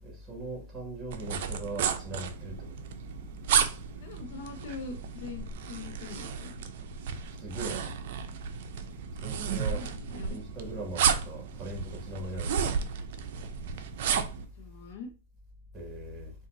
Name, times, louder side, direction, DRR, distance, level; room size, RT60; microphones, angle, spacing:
voice 1, 0.0-2.6 7.4-7.9 9.2-9.8 10.3-12.6 15.7-16.3, right 1 dB, 20° right, 1.8 m, -39 dB
sound 1, 1.1-14.4, right 7 dB, 65° right, 0.5 m, -33 dB
voice 2, 4.0-6.6 9.6-10.4 14.6-15.1, left 4 dB, 65° left, 0.7 m, -43 dB
3.9 x 2.4 x 2.6 m
hypercardioid pair, 130°, 0 cm